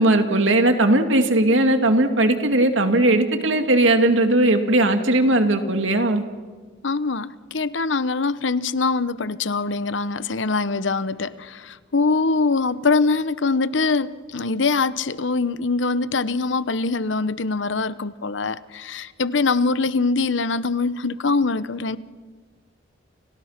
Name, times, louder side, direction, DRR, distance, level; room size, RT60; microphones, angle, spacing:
voice 1, 0.0-6.2, right 1 dB, 75° right, 6 dB, 2.6 m, -18 dB
voice 2, 6.8-22.0, left 4 dB, 70° left, 15 dB, 0.9 m, -23 dB
30.0 x 30.0 x 5.9 m, 1.5 s
head